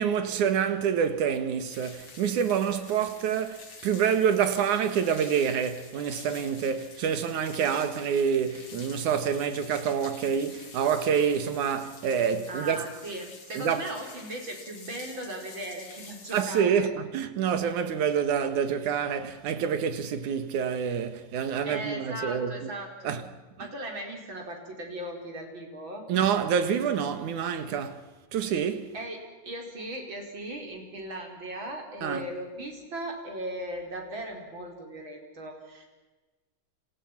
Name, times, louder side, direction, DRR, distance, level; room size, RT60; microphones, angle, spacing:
voice 1, 0.0-12.8 13.5-13.8 16.3-22.7 23.0-23.2 26.1-28.0 28.3-28.9 32.0-32.3, right 7 dB, 70° right, 3.0 m, -27 dB
sound 1, 1.7-16.6, left 4 dB, 40° left, 3.4 m, -48 dB
voice 2, 12.5-16.9 21.7-23.1 23.6-26.1 28.9-35.9, right 1 dB, 35° right, 5.4 m, -38 dB
29.5 x 27.5 x 6.0 m
omnidirectional pair, 3.7 m